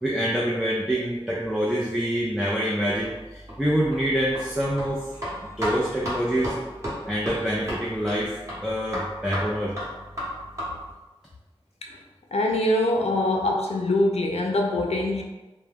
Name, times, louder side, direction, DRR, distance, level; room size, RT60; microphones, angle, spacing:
voice 1, 0.0-5.1 5.4-6.5 7.1-8.4 8.6-9.7, equal, 5° right, -5 dB, 0.4 m, -26 dB
sound 1, 2.9-10.9, equal, 30° right, 1.1 m, -35 dB
voice 2, 12.3-15.2, left 1 dB, 85° left, 1 dB, 0.4 m, -23 dB
2.2 x 2.1 x 3.3 m, 1.1 s
wide cardioid pair, 40°, 10 cm